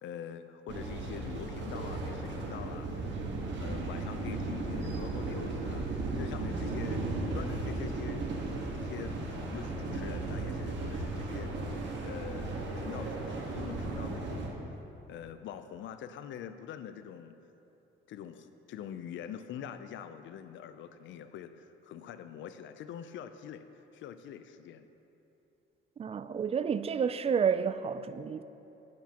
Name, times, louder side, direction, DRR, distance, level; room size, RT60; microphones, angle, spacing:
voice 1, 0.0-2.9 3.6-7.0 7.3-8.2 8.7-11.5 12.0-12.5 12.7-14.6 15.1-17.4 18.1-23.6 23.9-24.9, left 9 dB, 75° left, 10 dB, 0.5 m, -44 dB
sound 1, 0.7-14.5, right 2 dB, 65° right, 1.4 m, -35 dB
voice 2, 26.0-28.4, right 7 dB, 30° right, 13 dB, 0.3 m, -30 dB
10.5 x 10.5 x 2.9 m, 3.0 s
cardioid pair, 90°, 20 cm